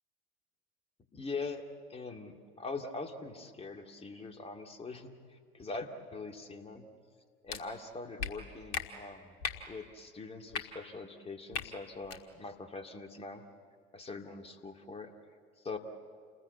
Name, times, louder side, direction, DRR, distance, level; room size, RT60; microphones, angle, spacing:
voice 1, 1.1-1.6 1.9-6.8 7.4-9.4 9.7-13.4 13.9-15.1 15.6-15.8, left 3 dB, 20° left, 5 dB, 2.2 m, -42 dB
sound 1, 7.5-7.6 8.2-8.3 8.7-8.8 9.4-9.6 10.5-10.6 11.5-11.7 12.0-12.2, left 6 dB, 65° left, 1.9 m, -35 dB
29.0 x 21.0 x 8.4 m, 2.1 s
figure-of-eight pair, 70°, 31 cm